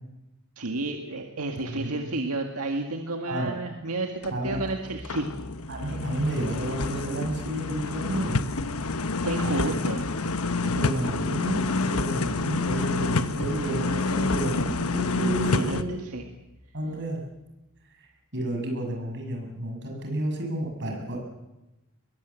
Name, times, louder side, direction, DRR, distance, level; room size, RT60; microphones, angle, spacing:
voice 1, 0.6-5.3 9.2-10.0 15.4-16.2, right 2 dB, 85° right, 3 dB, 1.9 m, -31 dB
voice 2, 1.6-2.0 3.3-3.5 4.3-4.6 5.7-8.4 9.5-10.0 10.6-16.1 16.7-17.2 18.3-21.2, right 1 dB, 55° right, 1 dB, 6.5 m, -31 dB
sound 1, 4.2-4.4 4.9-15.8, left 3 dB, 75° left, 1.2 m, -28 dB
sound 2, 4.4-17.7, equal, 30° right, 4.2 m, -44 dB
22.0 x 20.0 x 8.3 m, 1.0 s
head